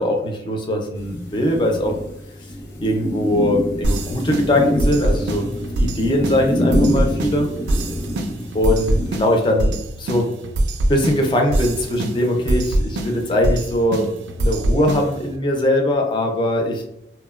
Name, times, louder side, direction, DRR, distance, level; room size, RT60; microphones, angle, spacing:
voice 1, 0.0-2.0 2.8-7.5 8.5-10.3 10.9-14.1 14.4-16.8, left 1 dB, 25° left, 2 dB, 0.4 m, -21 dB
sound 1, 0.9-9.2, equal, 75° left, 0.8 m, -26 dB
sound 2, 3.8-15.4, right 1 dB, 75° right, 0.3 m, -24 dB
2.8 x 2.1 x 2.2 m, 0.78 s
head